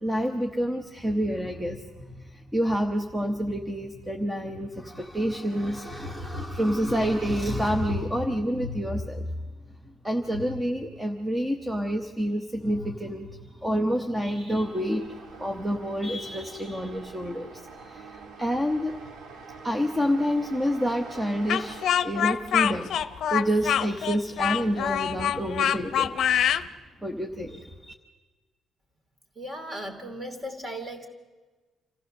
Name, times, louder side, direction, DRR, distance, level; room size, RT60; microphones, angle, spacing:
voice 1, 0.0-9.5 10.0-19.0 19.6-23.0 23.3-26.2 27.0-27.9, equal, 10° right, 4 dB, 1.0 m, -28 dB
sound 1, 14.5-21.9, right 4 dB, 65° right, 1.9 m, -45 dB
Speech, 21.5-26.6, left 9 dB, 65° left, 0.7 m, -25 dB
voice 2, 29.3-31.1, equal, 25° right, 5 dB, 2.7 m, -36 dB
27.5 x 15.0 x 6.6 m, 1.3 s
cardioid pair, 130°, 0 cm